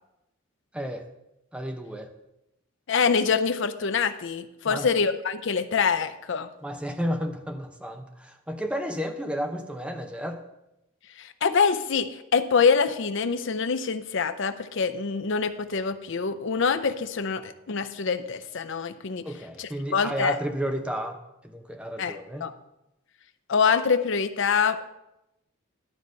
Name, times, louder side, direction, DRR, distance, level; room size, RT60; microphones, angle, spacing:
voice 1, 0.7-1.1 1.5-2.1 4.6-4.9 6.6-10.4 19.2-22.5, equal, 5° right, 5 dB, 0.7 m, -32 dB
voice 2, 2.9-6.5 11.2-19.3 19.6-20.4 22.0-22.2 22.4-22.5 23.5-24.9, left 5 dB, 65° left, 10 dB, 0.6 m, -25 dB
11.5 x 4.0 x 6.3 m, 0.88 s
head